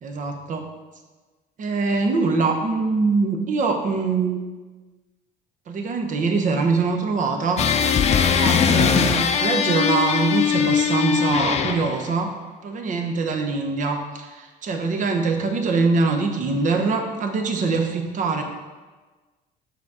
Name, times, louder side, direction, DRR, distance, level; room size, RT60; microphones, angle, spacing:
voice 1, 0.0-0.7 1.6-4.4 5.7-7.6 8.4-12.3 12.6-18.4, right 4 dB, 50° right, 4 dB, 1.0 m, -23 dB
sound 1, 7.6-12.0, left 7 dB, 40° left, 0.6 m, -20 dB
7.1 x 4.0 x 4.9 m, 1.3 s
cardioid pair, 110°, 17 cm